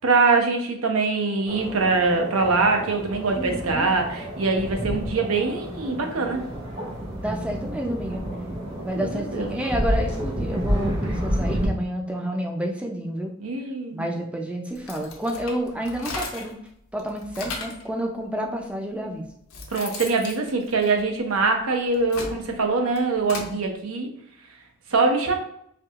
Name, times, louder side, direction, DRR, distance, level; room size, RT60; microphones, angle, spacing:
voice 1, 0.0-6.4 8.9-9.5 13.4-14.1 19.7-24.1 24.9-25.4, right 3 dB, 85° right, 3 dB, 0.7 m, -23 dB
sound 1, 1.5-11.7, equal, 55° right, 1.5 m, -30 dB
voice 2, 3.4-3.9 7.2-8.2 8.8-13.3 13.9-16.6 16.9-19.3, right 1 dB, 5° right, 2 dB, 0.4 m, -29 dB
sound 2, 14.7-16.6 17.0-17.9 18.7-18.8 19.2-21.4 21.9-23.5, left 3 dB, 85° left, 0.7 m, -36 dB
4.5 x 2.7 x 2.4 m, 0.72 s
head